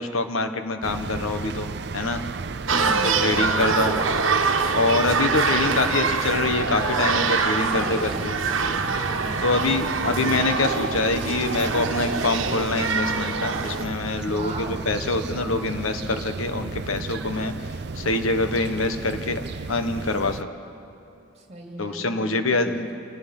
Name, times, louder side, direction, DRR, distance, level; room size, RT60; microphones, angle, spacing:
voice 1, 0.0-2.2 3.0-4.1 4.7-8.6 9.4-20.5 21.8-22.9, left 2 dB, 85° left, 8 dB, 1.3 m, -25 dB
sound 1, 0.8-20.4, right 4 dB, 55° right, 0.5 m, -34 dB
voice 2, 2.7-3.6 7.6-10.2 14.2-14.9 21.3-22.8, right 1 dB, 30° right, 0 dB, 2.7 m, -38 dB
sound 2, 2.7-13.8, right 4 dB, 75° right, 1.3 m, -25 dB
28.0 x 19.0 x 5.4 m, 2.6 s
head